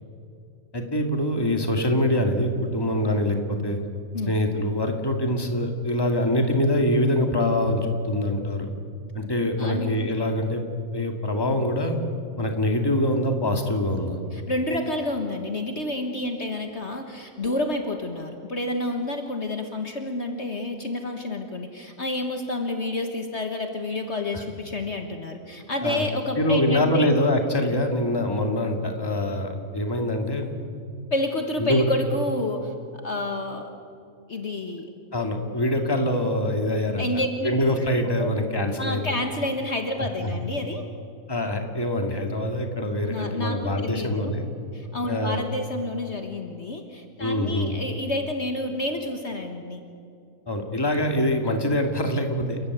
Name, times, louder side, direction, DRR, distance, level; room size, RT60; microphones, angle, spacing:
voice 1, 0.7-3.8 4.3-8.7 9.1-10.6 10.9-12.0 12.4-14.2 24.3-24.4 25.8-26.0 26.4-30.5 31.6-31.8 35.1-37.0 37.4-39.0 40.2-40.3 41.3-44.4 45.1-45.4 47.2-47.7 50.5-52.6, left 1 dB, 15° left, 4 dB, 2.2 m, -24 dB
voice 2, 9.6-9.9 14.3-27.1 31.1-33.7 34.3-34.9 37.0-37.5 38.2-38.3 38.8-40.9 43.1-44.4 44.7-49.8, left 1 dB, 50° left, 5 dB, 1.7 m, -29 dB
29.0 x 14.5 x 9.5 m, 2.5 s
omnidirectional pair, 1.6 m